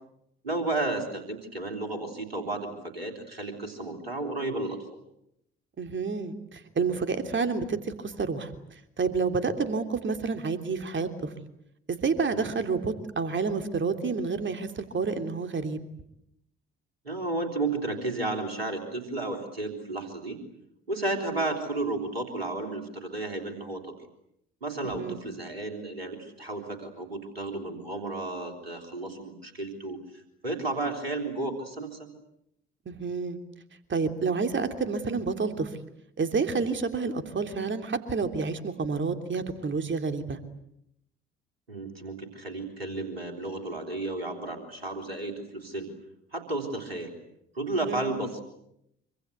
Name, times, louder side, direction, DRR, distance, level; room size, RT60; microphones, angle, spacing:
voice 1, 0.4-4.8 12.3-12.5 17.0-20.4 20.9-23.9 24.6-32.1 41.7-45.9 46.3-47.1 47.5-48.4, right 2 dB, 90° right, 4 dB, 3.6 m, -33 dB
voice 2, 5.8-8.5 9.0-11.3 11.9-15.8 25.0-25.2 32.8-33.4 33.9-35.7 36.2-40.4 47.9-48.1, right 4 dB, 40° right, 7 dB, 3.2 m, -29 dB
26.0 x 25.5 x 8.2 m, 0.78 s
figure-of-eight pair, 45°, 30 cm